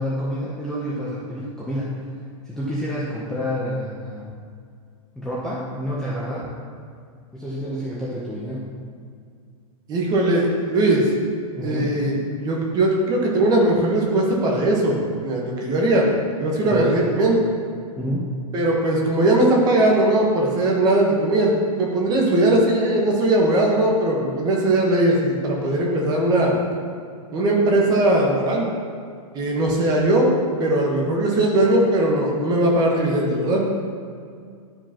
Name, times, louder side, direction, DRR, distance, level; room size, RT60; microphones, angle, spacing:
voice 1, 0.0-2.1 2.4-4.2 5.2-6.5 7.3-8.7 11.6-12.0 16.6-16.9 18.0-18.3, equal, 5° left, -8 dB, 0.6 m, -28 dB
voice 2, 9.9-11.1 11.6-16.1 16.4-17.4 18.5-26.5 27.3-28.7 29.3-30.3 30.6-33.7, right 1 dB, 20° right, -2 dB, 1.1 m, -19 dB
11.0 x 5.0 x 2.9 m, 2.2 s
supercardioid pair, 160°, 19 cm